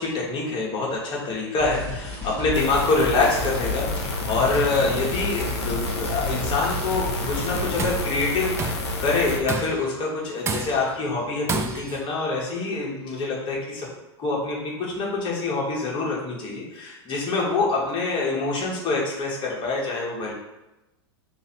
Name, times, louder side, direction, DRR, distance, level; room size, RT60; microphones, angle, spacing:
voice 1, 0.0-13.9 14.2-20.3, left 3 dB, 35° left, -3 dB, 1.3 m, -26 dB
sound 1, 1.6-8.0, left 3 dB, 10° left, 1.4 m, -33 dB
sound 2, 2.5-9.4, left 2 dB, 80° left, 0.7 m, -30 dB
Tools, 7.5-8.1 8.6-9.0 9.5-9.9 10.5-11.0 11.5-12.1, right 5 dB, 20° right, 0.3 m, -29 dB
3.1 x 2.6 x 4.2 m, 1.0 s
hypercardioid pair, 100°, 14 cm